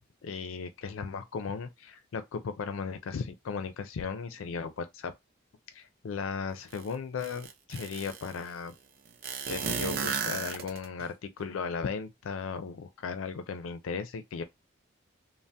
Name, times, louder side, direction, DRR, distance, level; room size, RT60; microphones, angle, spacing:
voice 1, 0.2-5.1 5.7-8.7 9.5-14.4, left 5 dB, 80° left, 0.4 m, -36 dB
sound 1, 6.7-6.8 7.2-8.3 9.2-11.0, right 6 dB, 45° right, 0.5 m, -33 dB
2.7 x 2.0 x 3.2 m
head